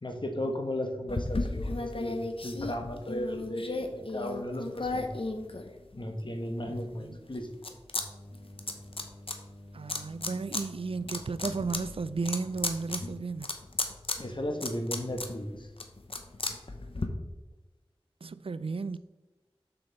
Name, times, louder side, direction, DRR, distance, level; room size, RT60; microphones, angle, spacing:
voice 1, 0.0-2.2 2.4-5.1 6.0-7.5 14.2-15.7, left 1 dB, 55° left, 1.2 m, -35 dB
sound 1, 1.1-6.2 6.7-8.1 8.3-9.4 9.9-10.6 11.0-17.1, left 2 dB, 70° left, 0.8 m, -35 dB
voice 2, 6.7-7.2 9.7-13.5 18.2-19.0, right 4 dB, 70° right, 0.4 m, -34 dB
sound 2, 8.0-13.0, left 1 dB, 5° right, 2.5 m, -49 dB
6.9 x 6.8 x 4.0 m
wide cardioid pair, 50°, 10 cm